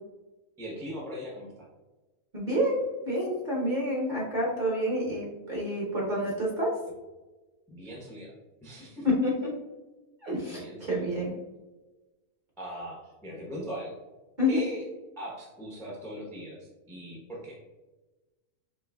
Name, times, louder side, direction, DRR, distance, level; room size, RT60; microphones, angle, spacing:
voice 1, 0.6-1.5 7.7-8.3 8.6-9.1 10.5-11.1 12.6-14.0 14.5-14.8 15.2-16.6 16.9-17.6, equal, 5° left, -4 dB, 0.5 m, -40 dB
voice 2, 2.3-6.7 9.0-9.5 10.2-11.3 14.4-14.6, left 1 dB, 40° right, -4 dB, 0.9 m, -28 dB
4.6 x 3.2 x 2.3 m, 1.2 s
omnidirectional pair, 1.5 m